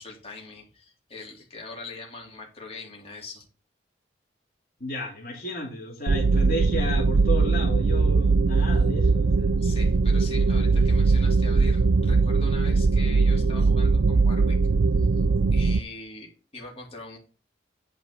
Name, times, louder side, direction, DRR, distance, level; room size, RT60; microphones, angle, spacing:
voice 1, 0.0-3.4 9.6-14.6 15.0-15.2 15.5-17.2, left 3 dB, 35° left, -2 dB, 3.1 m, -42 dB
voice 2, 4.8-9.6, equal, 55° left, -2 dB, 2.8 m, -33 dB
sound 1, 6.1-15.8, right 4 dB, 70° right, 0.5 m, -21 dB
9.3 x 5.1 x 6.7 m, 0.34 s
head